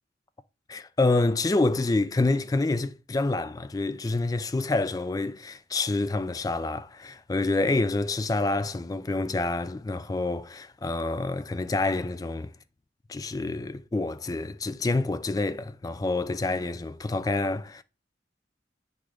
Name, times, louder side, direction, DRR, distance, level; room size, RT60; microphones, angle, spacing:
voice 1, 0.7-12.5 13.1-17.8, left 2 dB, 20° left, 0.3 m, -27 dB
8.1 x 3.7 x 4.9 m
head